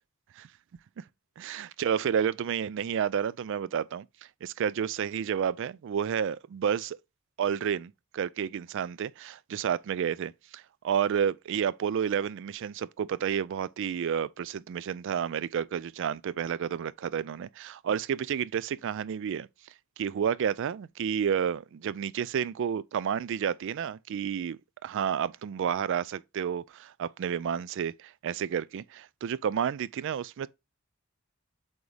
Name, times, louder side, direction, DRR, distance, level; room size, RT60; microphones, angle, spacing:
voice 1, 1.4-4.1 4.4-7.0 7.4-19.5 20.0-30.5, right 8 dB, 60° right, 0.3 m, -30 dB
7.9 x 3.6 x 3.3 m
head